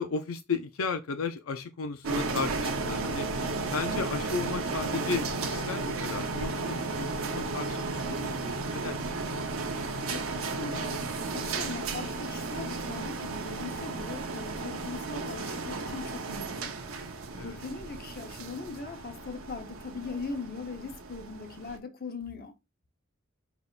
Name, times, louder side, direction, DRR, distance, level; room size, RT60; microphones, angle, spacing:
voice 1, 0.0-3.3 3.7-9.1 17.4-17.6, left 5 dB, 90° left, 0.5 m, -35 dB
sound 1, 2.0-21.8, right 3 dB, 85° right, 0.9 m, -34 dB
voice 2, 10.1-11.0 11.3-16.7 17.3-22.5, left 4 dB, 50° left, 0.9 m, -40 dB
5.2 x 3.5 x 2.5 m
head